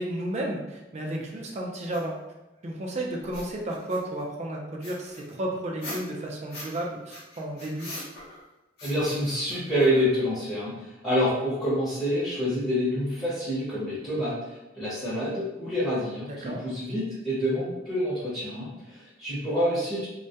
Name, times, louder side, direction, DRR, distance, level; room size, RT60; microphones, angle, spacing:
voice 1, 0.0-2.2 2.6-8.0 16.3-16.6, right 1 dB, 35° right, -1 dB, 0.4 m, -33 dB
sound 1, 1.9-2.0 3.2-4.2 4.8-6.8 7.1-8.4 8.8-10.3, left 1 dB, 55° left, 0.8 m, -42 dB
voice 2, 8.8-14.3 14.7-20.1, equal, 15° left, -11 dB, 0.8 m, -27 dB
2.2 x 2.1 x 2.7 m, 1.0 s
head